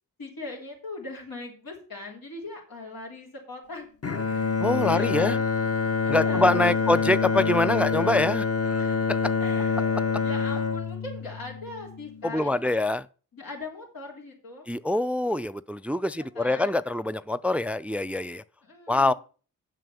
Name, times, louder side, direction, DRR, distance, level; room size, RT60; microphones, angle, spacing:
voice 1, 0.2-3.9 4.2-5.5 6.0-7.0 8.8-9.1 9.4-12.8 13.3-14.7 16.2-16.8 18.6-19.1, left 2 dB, 90° left, 3.5 m, -40 dB
Bowed string instrument, 4.0-12.3, left 5 dB, 45° left, 1.1 m, -26 dB
voice 2, 4.6-5.4 6.1-8.4 8.7-8.8 9.1-9.3 12.2-13.0 14.7-18.4 18.9-19.1, left 2 dB, 5° right, 0.3 m, -25 dB
7.7 x 5.9 x 6.9 m
cardioid pair, 50°, 34 cm